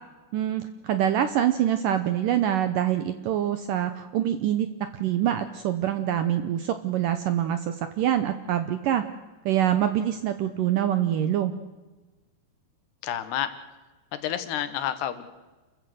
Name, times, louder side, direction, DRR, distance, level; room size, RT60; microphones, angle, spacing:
voice 1, 0.3-4.7 5.0-9.0 9.5-11.5, right 11 dB, 75° right, 10 dB, 2.0 m, -25 dB
voice 2, 13.0-13.5 14.1-15.3, left 10 dB, 75° left, 11 dB, 3.3 m, -29 dB
29.0 x 14.5 x 7.9 m, 1.2 s
omnidirectional pair, 4.9 m